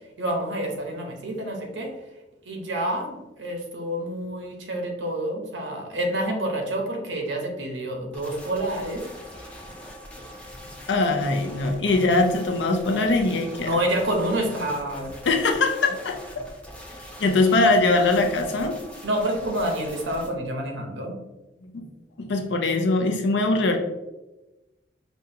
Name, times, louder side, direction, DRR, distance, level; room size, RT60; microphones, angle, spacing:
voice 1, 0.2-1.9 2.5-9.0 11.0-11.1 13.6-15.1 19.0-21.2, right 1 dB, 75° right, 1 dB, 0.8 m, -28 dB
sound 1, 8.1-20.3, equal, 5° left, 0.4 m, -42 dB
voice 2, 10.9-13.7 15.2-16.4 17.2-18.7 21.7-21.9 22.2-23.8, left 2 dB, 70° left, 4 dB, 0.5 m, -22 dB
5.2 x 2.3 x 2.8 m, 1.0 s
head